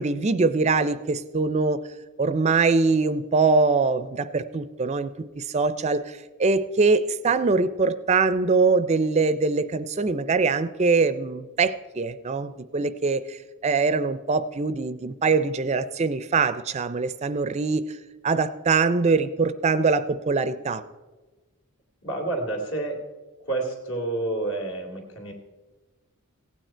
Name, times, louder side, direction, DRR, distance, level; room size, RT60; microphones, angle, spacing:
voice 1, 0.0-1.8 2.2-18.0 18.2-20.8, right 4 dB, 30° right, 13 dB, 0.4 m, -23 dB
voice 2, 22.0-23.0 23.4-25.3, right 2 dB, 60° left, 2 dB, 2.5 m, -29 dB
16.0 x 9.1 x 4.4 m, 1.2 s
head